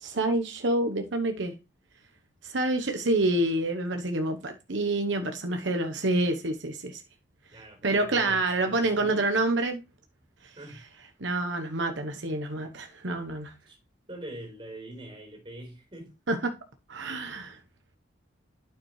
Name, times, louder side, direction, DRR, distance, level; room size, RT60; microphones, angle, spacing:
voice 1, 0.0-1.5 2.4-7.0 7.8-9.8 11.2-13.5 16.3-16.5 16.9-17.6, right 2 dB, 80° right, 1.0 m, -27 dB
voice 2, 7.5-8.4 8.7-9.2 10.6-10.8 13.7-13.8 14.1-16.1, right 1 dB, 25° right, 4.3 m, -43 dB
9.1 x 7.1 x 3.2 m
head